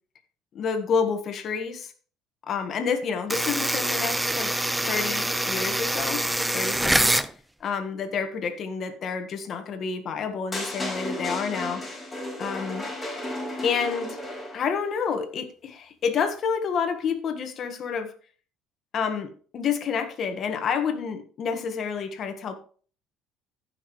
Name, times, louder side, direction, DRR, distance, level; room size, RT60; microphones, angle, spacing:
voice 1, 0.5-1.9 2.5-4.6 4.9-6.2 6.5-7.2 7.6-11.8 12.4-12.8 13.6-14.2 14.5-18.1 18.9-22.5, left 6 dB, 45° left, 1.5 m, -29 dB
sound 1, 3.3-7.3, right 1 dB, 5° right, 0.5 m, -25 dB
sound 2, 10.5-14.8, left 1 dB, 10° left, 4.6 m, -33 dB
15.0 x 5.9 x 3.2 m
cardioid pair, 110°, 0 cm